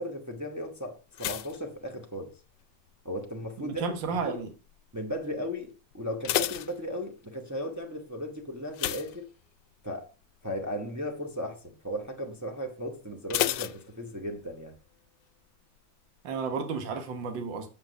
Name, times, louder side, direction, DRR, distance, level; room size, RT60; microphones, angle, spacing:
voice 1, 0.0-2.3 3.0-3.8 4.2-4.4 4.9-9.3 9.8-10.1 10.4-14.7, equal, 25° right, 0.4 m, -36 dB
sound 1, 1.1-2.6 2.9-3.4 4.0-4.4 4.7-4.8 5.2-5.3 5.9-7.4 8.7-9.9 10.2-10.5 10.9-11.0 13.3-14.5 14.8-14.9, left 13 dB, 75° left, 1.1 m, -32 dB
voice 2, 3.6-4.5 16.2-17.7, right 5 dB, 70° right, 1.9 m, -32 dB
7.2 x 6.2 x 5.1 m
omnidirectional pair, 2.1 m